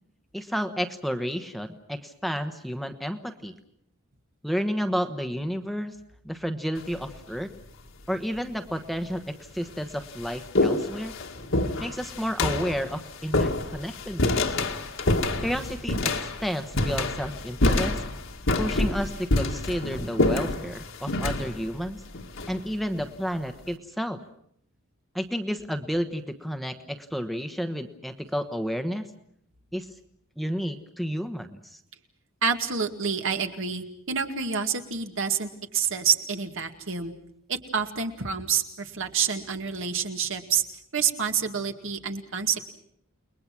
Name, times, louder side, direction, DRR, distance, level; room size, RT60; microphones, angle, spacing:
voice 1, 0.3-3.5 4.4-6.0 6.2-7.5 8.1-11.1 11.8-14.5 15.4-18.0 18.6-22.0 22.5-24.2 25.1-29.1 29.7-29.9 30.4-31.8, equal, ahead, 8 dB, 1.2 m, -31 dB
sound 1, 6.8-7.2 8.1-8.2 9.1-9.2 9.6-23.1, left 2 dB, 65° left, 2.0 m, -27 dB
voice 2, 32.4-37.1 37.5-40.6 40.9-42.7, right 6 dB, 65° right, 6 dB, 2.2 m, -28 dB
30.0 x 21.0 x 6.1 m, 0.69 s
head